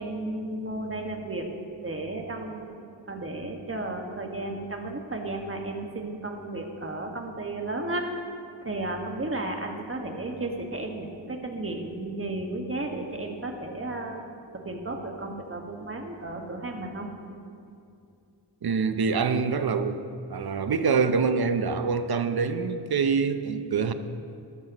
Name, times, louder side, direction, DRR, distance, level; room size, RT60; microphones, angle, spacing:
voice 1, 0.0-1.5 1.8-8.1 8.6-14.2 14.5-17.1, right 2 dB, 30° right, 2 dB, 1.8 m, -33 dB
voice 2, 18.6-20.0 20.3-23.9, right 5 dB, 50° right, 10 dB, 0.9 m, -25 dB
13.5 x 12.5 x 3.1 m, 2.5 s
cardioid pair, 45°, 46 cm